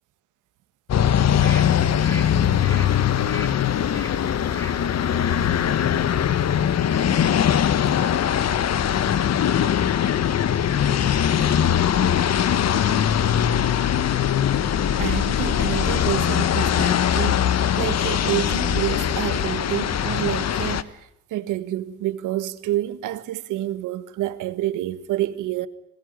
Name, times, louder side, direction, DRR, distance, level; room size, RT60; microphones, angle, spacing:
sound 1, 0.9-20.8, left 9 dB, 60° left, 1.4 m, -21 dB
sound 2, 1.2-7.7 8.0-8.2, equal, 10° left, 4.3 m, -42 dB
voice 1, 15.0-20.9 21.3-25.7, right 14 dB, 90° right, 1.7 m, -28 dB
26.5 x 20.5 x 9.4 m
cardioid pair, 90°, 30 cm